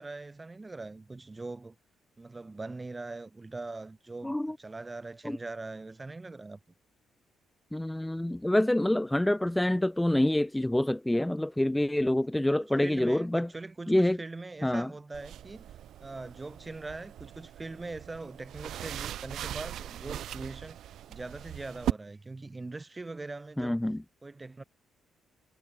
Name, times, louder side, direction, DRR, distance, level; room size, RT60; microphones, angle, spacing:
voice 1, 0.0-1.7 2.2-6.6 12.6-15.7 16.0-20.8 21.1-23.8 24.2-24.6, right 3 dB, 20° right, 6.7 m, -42 dB
voice 2, 4.2-4.5 5.2-5.4 7.7-13.5 13.9-14.2 14.6-14.9 23.6-24.0, left 1 dB, 5° left, 0.6 m, -26 dB
sound 1, 15.1-21.9, right 11 dB, 75° right, 0.9 m, -39 dB
cardioid pair, 90°, 0 cm